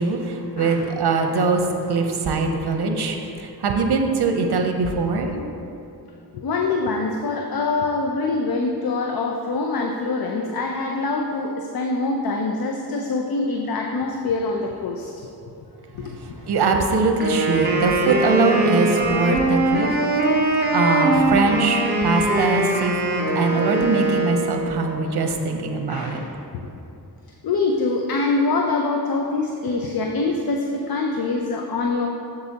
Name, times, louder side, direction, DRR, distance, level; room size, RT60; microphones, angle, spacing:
voice 1, 0.0-5.3 16.1-26.3, right 3 dB, 75° right, 4 dB, 0.7 m, -22 dB
voice 2, 0.6-0.9 6.3-15.1 15.9-16.4 25.9-26.3 26.6-26.7 27.4-32.1, left 3 dB, 65° left, 1 dB, 0.5 m, -24 dB
Wind instrument woodwind instrument, 17.2-24.8, right 2 dB, 25° right, 0.7 m, -22 dB
7.8 x 6.7 x 2.8 m, 2.7 s
wide cardioid pair, 160°, 39 cm